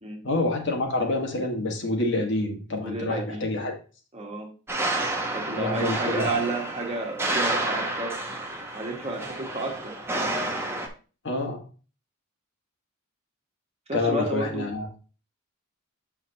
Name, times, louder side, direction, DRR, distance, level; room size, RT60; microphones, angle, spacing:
voice 1, 0.2-3.7 5.6-6.4 11.2-11.6 13.9-14.9, left 2 dB, 55° left, 1 dB, 1.5 m, -27 dB
voice 2, 2.8-3.4 4.1-4.5 5.3-8.2 8.7-9.9 13.9-14.7, right 2 dB, 30° right, 1 dB, 1.4 m, -31 dB
sound 1, 4.7-10.9, right 2 dB, 10° right, 0.9 m, -30 dB
7.2 x 5.8 x 2.8 m, 0.36 s
head